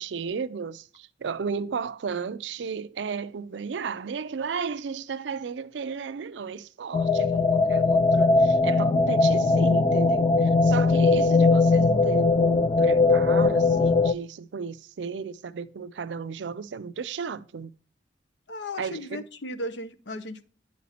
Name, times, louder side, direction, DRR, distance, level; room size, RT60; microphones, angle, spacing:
voice 1, 0.0-17.7 18.8-19.2, right 5 dB, 80° right, 0.5 m, -34 dB
sound 1, 6.9-14.1, left 3 dB, 30° left, 0.3 m, -20 dB
voice 2, 18.5-20.4, left 1 dB, 75° left, 0.7 m, -36 dB
9.2 x 4.2 x 4.2 m
head